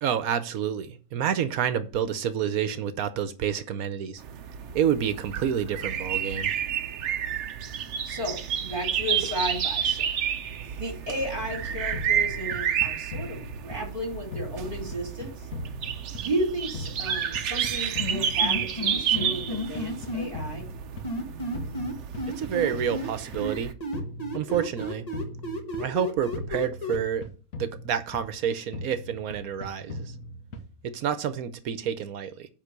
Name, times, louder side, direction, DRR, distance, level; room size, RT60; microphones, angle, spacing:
voice 1, 0.0-4.2 4.7-6.5 22.3-23.7 24.3-25.0 25.8-27.2 27.6-30.1 30.8-32.5, right 8 dB, 80° right, 1.2 m, -28 dB
sound 1, 4.2-23.7, right 8 dB, 60° right, 0.9 m, -30 dB
voice 2, 8.0-10.1 10.8-15.5 16.2-20.7, equal, 35° right, 2.7 m, -33 dB
sound 2, 11.9-14.0 14.3-16.5 16.7-18.9 19.1-21.2 21.5-23.5 23.9-26.0 26.3-28.4 28.7-30.9, left 1 dB, 65° left, 1.4 m, -39 dB
sound 3, 18.0-20.3 21.0-23.1 23.4-27.0, equal, 30° left, 1.4 m, -32 dB
9.7 x 3.7 x 6.6 m
omnidirectional pair, 1.5 m